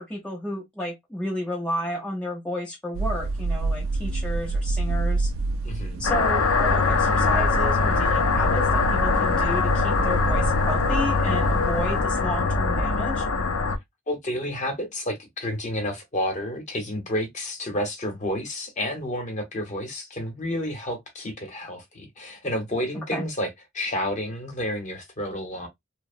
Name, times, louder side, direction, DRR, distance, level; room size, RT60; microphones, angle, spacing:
voice 1, 0.0-5.3 6.0-13.3 23.1-23.2, equal, 5° left, 0.5 m, -32 dB
sound 1, 2.9-12.0, right 2 dB, 80° right, 0.3 m, -28 dB
voice 2, 5.6-6.0 14.1-23.5 23.7-25.7, left 1 dB, 35° left, 0.9 m, -30 dB
sound 2, 6.0-13.8, left 4 dB, 85° left, 0.5 m, -22 dB
2.8 x 2.0 x 2.5 m
head